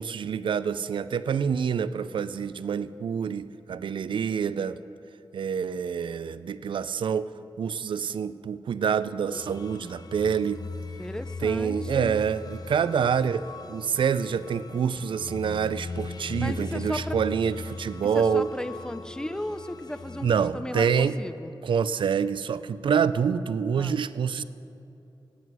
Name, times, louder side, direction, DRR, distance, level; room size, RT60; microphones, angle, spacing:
voice 1, 0.0-4.8 5.3-7.3 7.6-10.6 11.4-18.5 20.2-21.2 21.6-24.4, right 7 dB, 75° right, 15 dB, 0.4 m, -27 dB
sound 1, 9.3-20.5, left 3 dB, 50° left, 0.7 m, -39 dB
voice 2, 11.0-12.2 16.4-17.2 18.1-21.5 23.7-24.0, left 1 dB, 10° left, 12 dB, 0.5 m, -35 dB
16.0 x 9.4 x 6.1 m, 2.9 s
wide cardioid pair, 100°, 8 cm